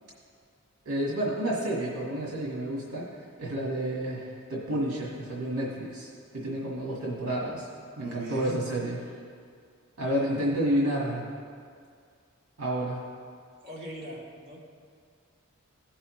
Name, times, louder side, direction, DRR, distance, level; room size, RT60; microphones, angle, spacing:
voice 1, 0.8-7.7 8.0-9.0 10.0-11.3 12.6-13.0, right 1 dB, 85° right, -4 dB, 1.6 m, -30 dB
voice 2, 8.0-8.6 13.6-14.6, right 1 dB, 45° right, -8 dB, 2.4 m, -40 dB
16.0 x 5.5 x 3.1 m, 2.2 s
head